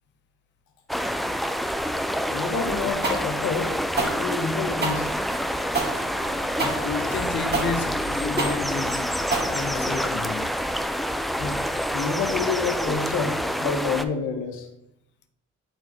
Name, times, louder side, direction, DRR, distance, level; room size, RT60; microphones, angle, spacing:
sound 1, 0.9-14.0, equal, ahead, 0.5 m, -27 dB
voice 1, 2.3-5.1 11.3-11.6 11.9-14.7, left 5 dB, 80° left, 1.6 m, -28 dB
sound 2, 3.0-10.1, right 3 dB, 35° right, 2.1 m, -28 dB
sound 3, 5.8-10.2, right 2 dB, 55° right, 1.8 m, -41 dB
voice 2, 6.6-10.5, left 5 dB, 40° left, 0.7 m, -31 dB
9.6 x 4.1 x 4.4 m
cardioid pair, 90°, 30 cm